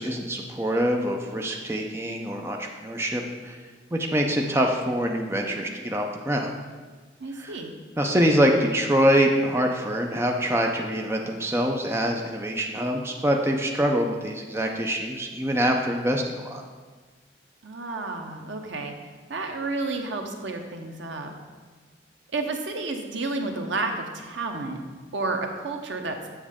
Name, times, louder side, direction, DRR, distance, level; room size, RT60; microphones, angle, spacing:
voice 1, 0.0-3.6 3.9-6.5 7.4-7.6 8.0-16.6, equal, 15° right, 2 dB, 0.5 m, -25 dB
voice 2, 7.2-7.8 17.6-18.9 19.3-21.3 22.3-24.8 25.1-26.2, right 3 dB, 80° right, 4 dB, 0.9 m, -31 dB
7.4 x 7.2 x 3.6 m, 1.4 s
head